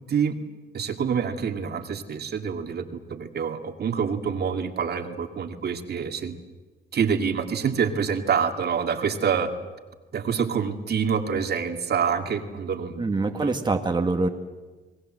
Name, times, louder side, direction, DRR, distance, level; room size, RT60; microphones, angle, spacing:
voice 1, 0.7-2.8 3.1-6.4 6.9-9.5 10.1-13.0 13.3-13.5, right 6 dB, 55° right, 6 dB, 2.3 m, -26 dB
voice 2, 13.0-14.3, right 3 dB, 20° right, 4 dB, 1.9 m, -24 dB
29.5 x 20.0 x 7.8 m, 1.2 s
cardioid pair, 90°, 20 cm